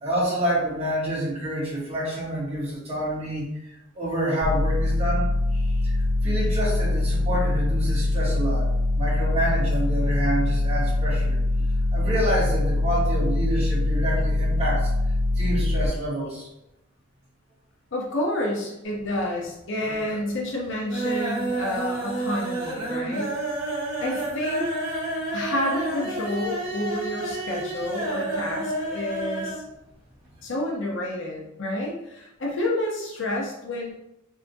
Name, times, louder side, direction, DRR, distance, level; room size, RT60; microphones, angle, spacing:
voice 1, 0.0-3.5 3.9-6.0 6.2-8.7 9.0-11.4 11.9-14.9 15.3-16.5, right 1 dB, 30° right, -6 dB, 1.3 m, -28 dB
sound 1, 4.4-15.9, left 2 dB, 65° right, 0.4 m, -23 dB
voice 2, 17.9-23.3 24.0-24.7 25.3-29.6 30.4-33.9, left 1 dB, 65° left, -2 dB, 0.7 m, -29 dB
sound 2, 18.8-19.5 19.8-20.3 20.6-29.6 29.9-30.0 30.3-30.4, right 1 dB, 50° right, 1.2 m, -30 dB
3.3 x 2.8 x 2.7 m, 0.88 s
head